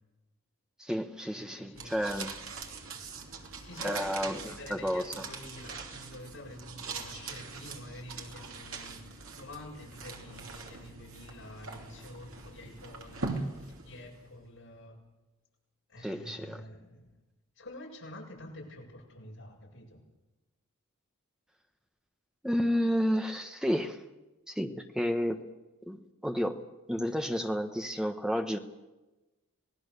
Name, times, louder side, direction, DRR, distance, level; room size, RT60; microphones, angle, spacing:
voice 1, 0.8-2.3 3.8-5.2 16.0-16.6 22.4-24.0 24.5-25.4 25.9-26.6 26.9-28.6, equal, 5° right, 5 dB, 1.2 m, -31 dB
voice 2, 1.3-1.9 3.6-15.0 15.9-17.1 17.6-20.0, left 1 dB, 60° left, -2 dB, 7.6 m, -48 dB
sound 1, 1.7-14.3, right 4 dB, 70° right, 2.9 m, -42 dB
26.5 x 19.0 x 6.9 m, 1.1 s
head